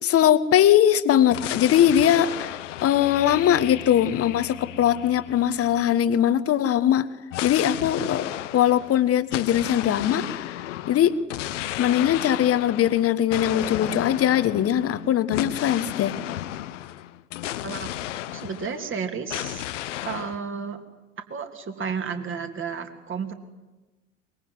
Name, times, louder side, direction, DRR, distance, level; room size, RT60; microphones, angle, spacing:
voice 1, 0.0-7.1 7.4-10.6 10.9-11.2 11.8-16.2, left 10 dB, 35° left, 13 dB, 1.5 m, -21 dB
sound 1, 1.3-6.0 7.3-19.0 19.3-20.4, left 14 dB, 65° left, 1.0 m, -34 dB
voice 2, 17.6-19.6 20.0-20.8 21.3-23.3, right 6 dB, 30° right, 6 dB, 3.2 m, -32 dB
23.0 x 22.0 x 9.6 m, 1.1 s
figure-of-eight pair, 70°, 39 cm